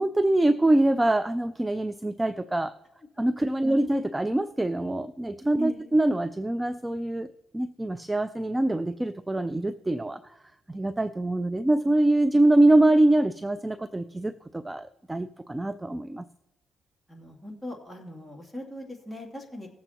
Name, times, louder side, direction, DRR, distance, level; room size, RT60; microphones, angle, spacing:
voice 1, 0.0-2.7 3.2-10.4 10.7-16.2, right 1 dB, 15° right, 14 dB, 0.4 m, -24 dB
voice 2, 5.6-6.0 17.1-19.7, left 1 dB, 5° left, -1 dB, 2.9 m, -40 dB
19.0 x 8.0 x 3.0 m, 0.92 s
cardioid pair, 90°, 0 cm